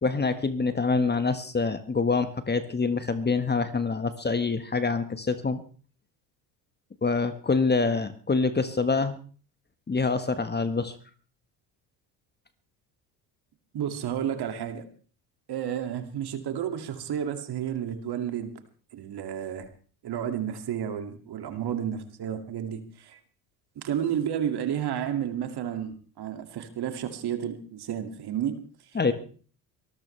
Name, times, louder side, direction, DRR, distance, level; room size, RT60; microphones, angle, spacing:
voice 1, 0.0-5.6 7.0-9.2 9.9-10.9 28.9-29.1, left 4 dB, 20° left, 10 dB, 1.4 m, -26 dB
voice 2, 13.7-14.8 15.5-18.5 18.9-19.7 20.0-23.2 23.8-28.5, right 9 dB, 50° right, 6 dB, 2.4 m, -31 dB
23.5 x 13.5 x 3.3 m, 0.41 s
hypercardioid pair, 70°, 49 cm